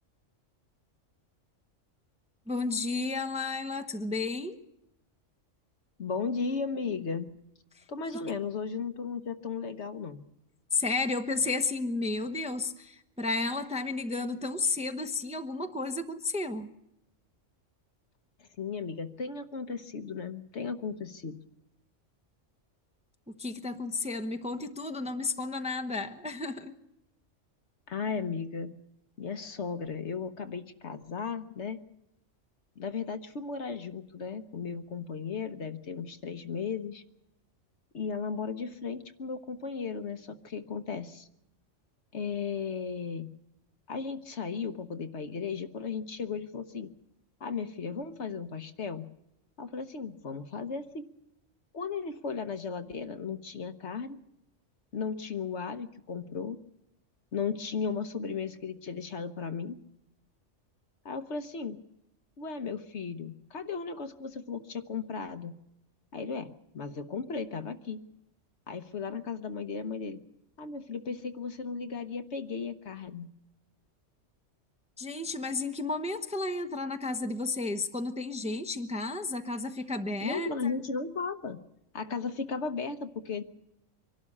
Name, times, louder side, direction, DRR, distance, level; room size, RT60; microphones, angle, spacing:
voice 1, 2.5-4.6 7.8-7.9 8.1-8.2 10.7-16.7 23.3-26.7 75.0-80.8, left 3 dB, 5° right, 7 dB, 0.8 m, -32 dB
voice 2, 6.0-7.3 7.9-10.2 18.4-21.4 27.9-28.8 29.2-31.8 32.8-37.0 37.9-41.3 42.1-43.3 43.9-46.9 47.4-49.1 49.6-51.1 51.7-54.2 54.9-56.6 57.3-59.8 61.0-61.8 62.4-65.6 66.1-68.0 68.7-70.2 70.6-73.3 80.2-81.6 81.9-83.4, left 5 dB, 65° left, 9 dB, 1.3 m, -35 dB
24.5 x 12.0 x 9.8 m, 0.85 s
omnidirectional pair, 1.3 m